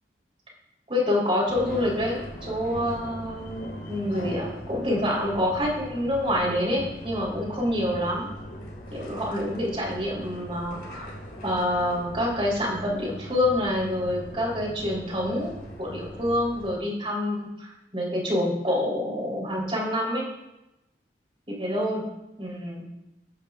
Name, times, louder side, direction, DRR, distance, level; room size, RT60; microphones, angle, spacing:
voice 1, 0.9-8.3 8.9-11.2 11.4-20.2 21.6-22.1 22.4-22.9, left 1 dB, 30° right, -3 dB, 3.9 m, -27 dB
sound 1, 1.5-16.8, equal, 65° left, 3.9 m, -40 dB
15.5 x 12.0 x 2.6 m, 0.94 s
head